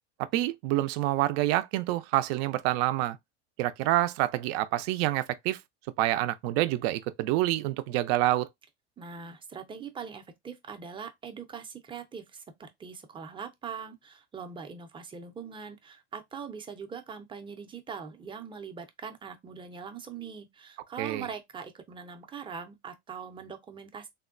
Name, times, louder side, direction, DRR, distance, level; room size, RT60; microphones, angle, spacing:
voice 1, 0.2-3.2 3.6-5.6 6.0-8.5 21.0-21.3, right 15 dB, 60° right, 0.5 m, -27 dB
voice 2, 9.0-24.1, right 6 dB, 15° right, 0.5 m, -42 dB
3.5 x 2.2 x 2.4 m
hypercardioid pair, 105°, 35 cm